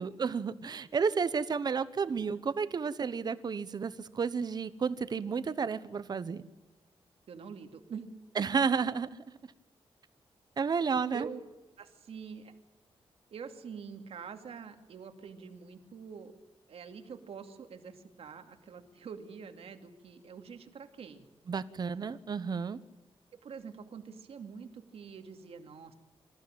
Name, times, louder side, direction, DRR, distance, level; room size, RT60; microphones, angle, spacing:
voice 1, 0.0-6.5 8.4-9.1 9.4-9.5 10.6-11.3 21.5-22.8, right 5 dB, 45° right, 14 dB, 1.0 m, -31 dB
voice 2, 7.3-8.1 11.1-11.4 11.8-12.5 13.3-16.3 16.7-21.3 23.3-25.9, right 6 dB, 75° right, 6 dB, 2.4 m, -45 dB
26.0 x 15.0 x 8.9 m, 1.1 s
wide cardioid pair, 170°, 10 cm